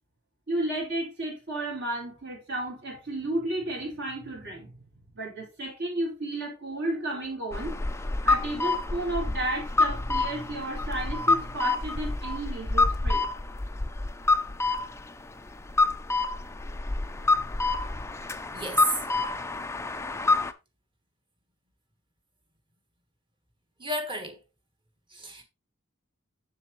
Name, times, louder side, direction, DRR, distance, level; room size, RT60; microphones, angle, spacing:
voice 1, 0.5-4.8 5.1-7.8 8.2-13.4, right 1 dB, 55° right, 3.9 m, -33 dB
sound 1, 7.5-20.5, left 3 dB, 15° left, 0.4 m, -27 dB
voice 2, 18.5-19.0 23.8-24.4 25.1-25.4, right 1 dB, 25° right, 1.4 m, -31 dB
7.1 x 7.0 x 3.1 m
head